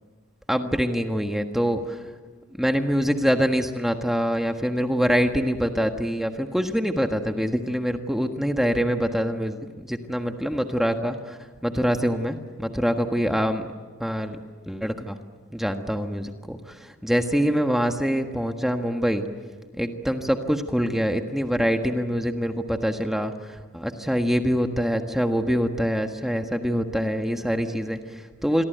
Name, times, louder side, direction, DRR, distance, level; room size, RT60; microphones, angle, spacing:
voice 1, 0.5-2.0 2.6-13.7 14.0-14.4 14.7-15.2 15.5-19.3 19.7-28.6, equal, ahead, 5 dB, 1.4 m, -25 dB
27.5 x 22.5 x 9.3 m, 1.5 s
head